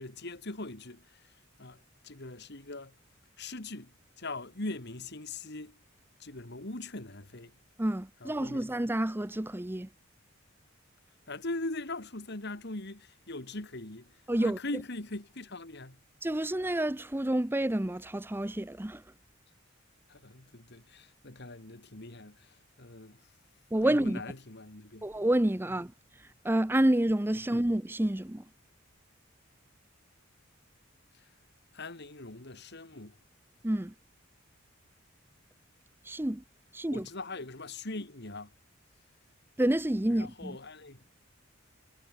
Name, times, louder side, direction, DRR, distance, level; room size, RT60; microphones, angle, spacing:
voice 1, 0.0-3.0 3.4-5.8 6.2-7.5 8.2-8.7 11.3-16.0 20.1-23.3 23.8-25.1 27.4-27.5 31.1-31.3 31.7-33.2 36.9-38.5 40.1-41.0, left 2 dB, 55° left, 2.6 m, -41 dB
voice 2, 7.8-9.9 14.3-14.6 16.2-19.0 23.7-24.2 25.0-25.9 26.4-28.4 33.6-33.9 36.0-36.4 36.7-37.1 39.6-40.6, right 1 dB, 10° right, 0.6 m, -28 dB
head